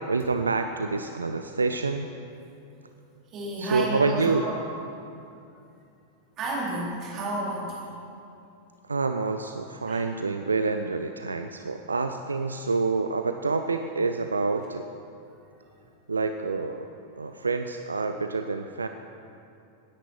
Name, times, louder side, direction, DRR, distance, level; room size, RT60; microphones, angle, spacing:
voice 1, 0.1-2.1 3.6-4.5 8.9-14.9 16.1-16.9 17.2-18.9, right 4 dB, 75° right, 7 dB, 0.4 m, -27 dB
voice 2, 3.3-4.6 6.4-7.9 9.9-10.0, right 2 dB, 35° right, -4 dB, 3.6 m, -31 dB
17.5 x 9.9 x 4.5 m, 2.6 s
figure-of-eight pair, 90°, 0 cm